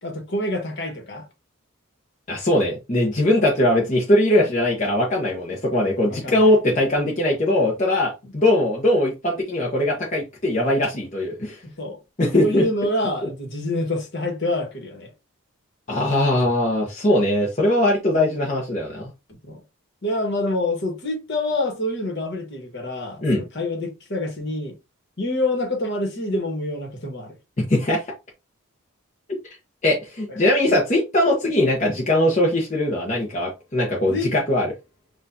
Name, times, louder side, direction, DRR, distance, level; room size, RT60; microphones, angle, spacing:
voice 1, 0.0-1.3 6.0-6.5 11.6-12.0 12.3-15.1 19.5-19.6 20.0-24.7 25.2-27.3 30.3-30.4 30.7-30.8 34.1-34.3, left 1 dB, 50° left, 1.3 m, -27 dB
voice 2, 2.3-11.6 12.2-12.6 15.9-19.1 23.2-23.4 27.7-28.0 29.4-29.6 29.8-34.7, left 1 dB, 35° left, 0.9 m, -20 dB
6.4 x 2.5 x 2.6 m
head